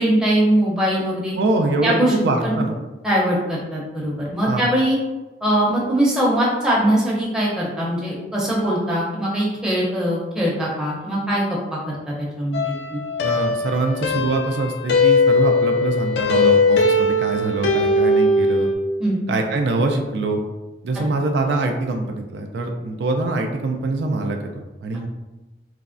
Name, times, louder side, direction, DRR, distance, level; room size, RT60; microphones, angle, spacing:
voice 1, 0.0-1.3 1.8-2.1 2.4-2.6 3.0-5.0 5.4-13.0 19.0-19.2 21.1-21.2, right 1 dB, 5° right, -6 dB, 0.6 m, -21 dB
voice 2, 1.4-2.8 4.5-4.7 13.2-18.7 19.3-20.4 20.8-25.1, right 2 dB, 70° right, 3 dB, 0.3 m, -24 dB
sound 1, 12.5-18.7, left 2 dB, 65° left, 0.4 m, -19 dB
3.3 x 2.0 x 2.5 m, 1.1 s
head